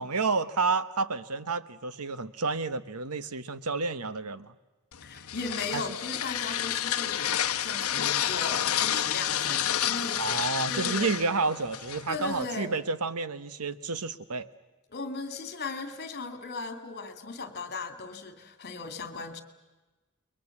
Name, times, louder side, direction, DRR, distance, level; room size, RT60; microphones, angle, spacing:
voice 1, 0.0-4.5 5.7-5.8 10.2-14.5, right 4 dB, 90° right, 13 dB, 1.2 m, -30 dB
sound 1, 4.9-12.4, left 10 dB, 70° left, 0.9 m, -30 dB
voice 2, 5.0-10.2 10.6-11.2 12.1-12.8 14.9-19.4, left 3 dB, 45° left, 8 dB, 2.5 m, -37 dB
29.0 x 22.5 x 7.3 m, 1.2 s
head